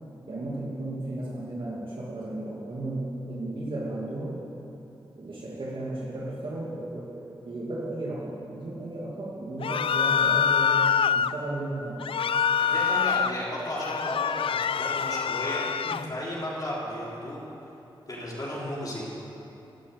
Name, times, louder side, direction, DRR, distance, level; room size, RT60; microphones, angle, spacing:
voice 1, 0.3-4.4 5.2-10.8 11.2-12.0, right 2 dB, 65° right, -6 dB, 2.5 m, -34 dB
sound 1, 9.6-11.3 12.0-13.3 13.7-16.1, left 7 dB, 75° left, 0.4 m, -25 dB
voice 2, 12.6-17.4 18.1-19.0, equal, 40° left, -6 dB, 4.2 m, -34 dB
14.5 x 11.5 x 8.3 m, 2.9 s
wide cardioid pair, 105°, 9 cm